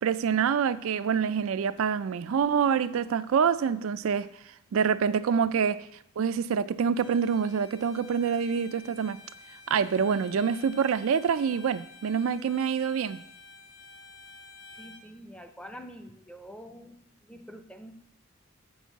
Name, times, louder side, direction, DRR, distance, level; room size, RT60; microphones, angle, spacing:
voice 1, 0.0-4.3 4.7-5.9 6.2-9.2 9.7-13.2, right 7 dB, 80° right, 0.4 m, -26 dB
Bowed string instrument, 6.9-15.1, left 3 dB, 65° left, 1.0 m, -50 dB
voice 2, 14.8-17.9, equal, 5° left, 0.5 m, -46 dB
7.1 x 6.2 x 7.0 m
head